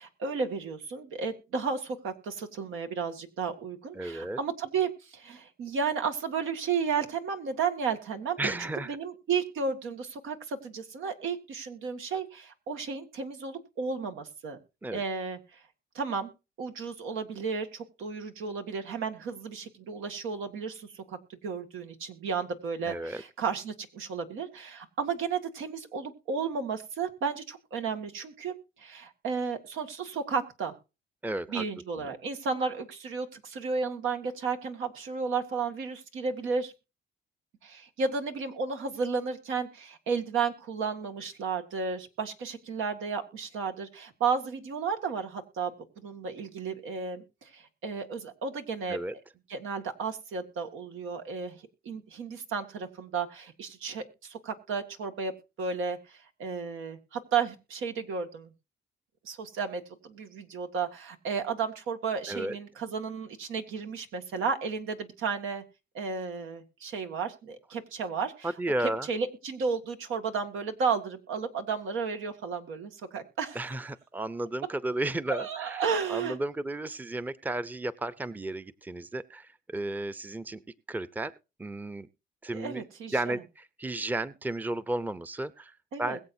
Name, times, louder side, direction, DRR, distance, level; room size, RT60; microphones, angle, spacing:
voice 1, 0.0-14.6 14.9-15.6 15.9-16.3 16.6-30.8 31.5-36.7 37.6-45.7 46.0-49.2 49.5-55.3 55.6-58.5 59.2-65.6 65.9-68.5 69.1-73.6 75.3-76.4 82.5-83.4 85.9-86.2, right 5 dB, 85° right, 5 dB, 2.0 m, -33 dB
voice 2, 3.9-4.4 8.4-9.0 14.8-15.0 22.9-23.2 31.2-31.6 32.0-32.1 48.9-49.1 62.3-62.6 68.4-69.1 73.5-75.8 76.1-80.6 80.9-81.3 81.6-82.1 82.4-82.9 83.1-86.2, right 2 dB, 10° right, 16 dB, 0.6 m, -33 dB
21.5 x 7.7 x 2.7 m, 0.29 s
cardioid pair, 90°, 20 cm